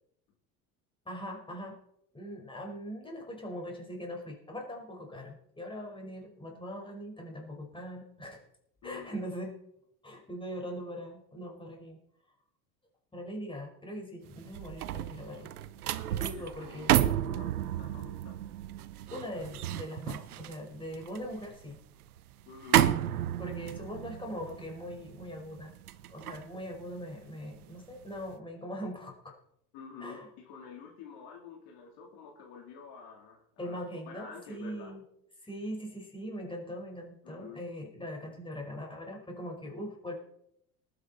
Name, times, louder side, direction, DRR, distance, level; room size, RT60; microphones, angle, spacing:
voice 1, 1.0-1.8 2.1-8.4 8.8-9.5 10.0-12.0 13.1-15.5 16.1-16.9 19.1-21.8 23.4-25.7 26.1-29.4 30.0-30.3 33.6-35.0 35.4-40.1, equal, 10° left, 0 dB, 4.7 m, -41 dB
sound 1, 14.3-27.6 28.0-28.3, right 12 dB, 85° right, 0.8 m, -32 dB
voice 2, 16.4-18.4 22.5-22.8 29.7-33.8 34.1-34.9 37.2-37.6, left 6 dB, 60° left, 0 dB, 3.4 m, -48 dB
19.5 x 9.0 x 4.2 m, 0.74 s
hypercardioid pair, 70°, 44 cm